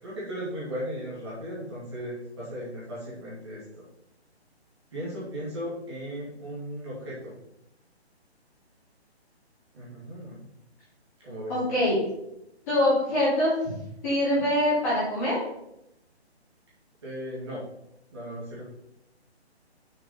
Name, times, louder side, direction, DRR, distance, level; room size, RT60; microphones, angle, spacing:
voice 1, 0.0-3.8 4.9-7.3 9.7-10.4 11.2-11.6 17.0-17.7 18.1-18.6, equal, 25° right, -8 dB, 2.3 m, -36 dB
voice 2, 11.5-12.0 12.7-13.5 14.0-15.4, left 1 dB, 15° left, -10 dB, 3.0 m, -24 dB
6.4 x 5.9 x 5.7 m, 0.83 s
hypercardioid pair, 175°, 33 cm